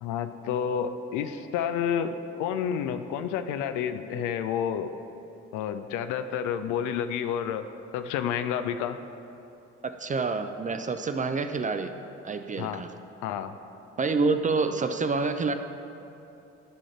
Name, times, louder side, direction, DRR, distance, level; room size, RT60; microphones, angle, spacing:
voice 1, 0.0-4.9 5.5-7.7 7.9-9.0 12.6-12.8 13.2-13.5, left 8 dB, 60° left, 10 dB, 0.5 m, -30 dB
voice 2, 9.8-11.9 12.2-12.9 14.0-15.5, right 4 dB, 20° right, 8 dB, 0.5 m, -27 dB
10.5 x 3.8 x 7.3 m, 2.8 s
figure-of-eight pair, 40°, 35 cm